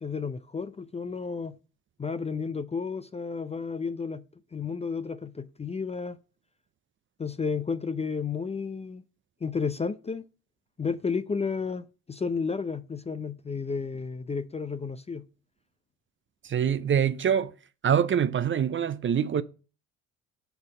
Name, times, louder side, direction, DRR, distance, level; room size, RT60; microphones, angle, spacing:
voice 1, 0.0-1.6 2.0-4.2 4.5-6.2 7.2-9.0 9.4-10.2 10.8-15.3, left 5 dB, 15° left, 0.5 m, -32 dB
voice 2, 16.4-17.5 17.8-19.4, right 8 dB, 30° right, 0.6 m, -24 dB
6.8 x 4.0 x 6.3 m
hypercardioid pair, 60°, 40 cm